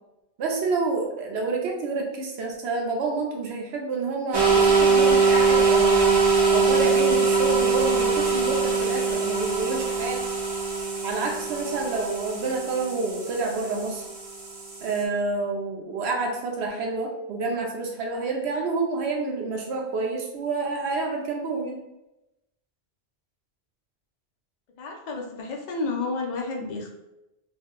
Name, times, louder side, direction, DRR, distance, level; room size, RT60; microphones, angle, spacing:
voice 1, 0.4-6.2 6.5-10.2 11.0-14.0 14.8-21.8, right 3 dB, 85° right, 1 dB, 0.9 m, -28 dB
sound 1, 4.3-15.0, right 4 dB, 45° right, 0.3 m, -22 dB
voice 2, 24.8-26.9, left 3 dB, 55° left, 0 dB, 0.6 m, -31 dB
2.6 x 2.1 x 3.6 m, 0.93 s
omnidirectional pair, 1.1 m